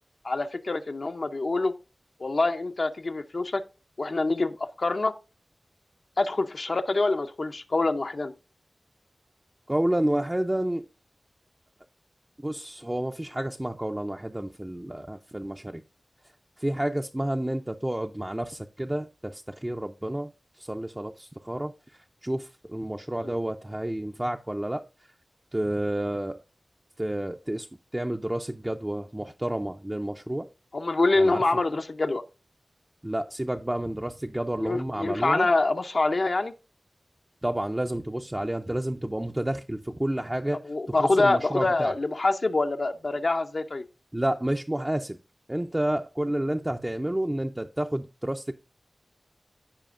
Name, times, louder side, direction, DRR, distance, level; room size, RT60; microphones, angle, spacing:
voice 1, 0.2-1.7 2.2-3.6 4.0-5.1 6.2-8.3 23.2-23.3 30.7-32.2 34.6-36.5 40.6-43.8, left 2 dB, 55° left, 0.5 m, -25 dB
voice 2, 9.7-10.9 12.4-15.8 16.6-20.3 20.6-21.7 22.2-24.8 25.5-26.4 27.0-27.7 27.9-30.5 31.2-31.4 33.0-35.5 37.4-40.6 40.9-41.9 44.1-45.2 45.5-48.5, right 1 dB, 15° right, 0.4 m, -30 dB
14.0 x 4.9 x 2.4 m
wide cardioid pair, 85°, 0 cm